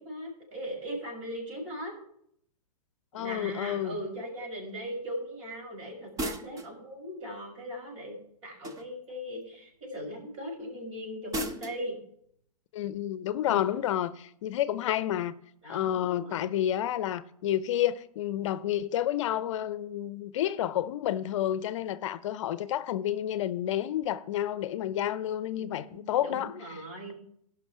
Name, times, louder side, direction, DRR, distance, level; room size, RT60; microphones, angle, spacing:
voice 1, 0.0-1.9 3.1-8.2 8.4-12.0 13.4-13.7 15.6-16.5 25.5-27.1, equal, 55° right, 6.0 m, -39 dB
voice 2, 3.1-4.0 12.7-15.3 15.7-26.5, left 11 dB, 55° left, 0.6 m, -30 dB
sound 1, 6.2-6.8 8.6-9.1 11.3-11.8, right 1 dB, 15° right, 0.8 m, -35 dB
17.5 x 5.9 x 4.8 m
hypercardioid pair, 135°, 19 cm